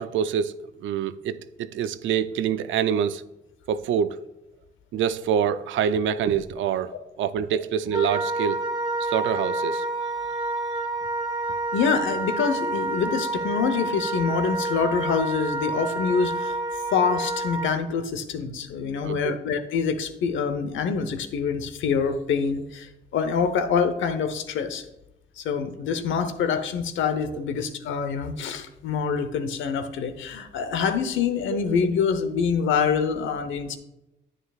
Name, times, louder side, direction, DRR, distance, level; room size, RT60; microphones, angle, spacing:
voice 1, 0.0-3.2 3.7-4.2 4.9-8.7 9.0-9.9 19.0-19.4 27.3-27.4, right 8 dB, 75° right, 0.5 m, -26 dB
Wind instrument woodwind instrument, 7.9-17.8, right 2 dB, 20° right, 1.3 m, -28 dB
voice 2, 11.7-16.6 16.9-24.8 25.4-33.8, left 6 dB, 75° left, 0.9 m, -25 dB
9.8 x 9.0 x 2.4 m
cardioid pair, 90°, 20 cm